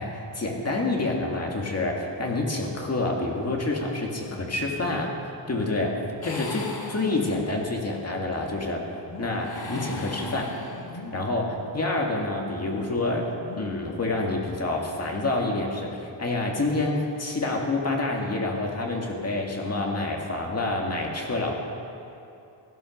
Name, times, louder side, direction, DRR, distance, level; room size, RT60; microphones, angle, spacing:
voice 1, 0.0-5.1 5.5-6.0 6.2-8.8 9.2-10.5 11.1-13.3 13.6-21.5, left 2 dB, 35° left, 0 dB, 2.1 m, -28 dB
sound 1, 6.2-7.7 9.3-11.1, left 2 dB, 50° left, 2.1 m, -39 dB
sound 2, 8.4-16.5, left 2 dB, 70° left, 3.6 m, -46 dB
17.0 x 12.5 x 6.5 m, 2.7 s
wide cardioid pair, 135°, 46 cm